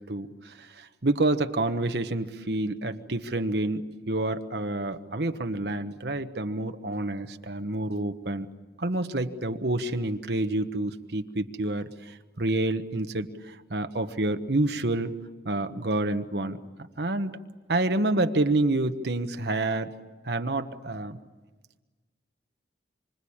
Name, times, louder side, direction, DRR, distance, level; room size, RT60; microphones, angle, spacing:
voice 1, 0.0-8.5 8.8-15.1 15.4-16.6 17.0-17.4 17.7-19.9 20.2-21.2, right 2 dB, 70° right, 7 dB, 1.2 m, -28 dB
27.0 x 25.0 x 8.8 m, 1.3 s
head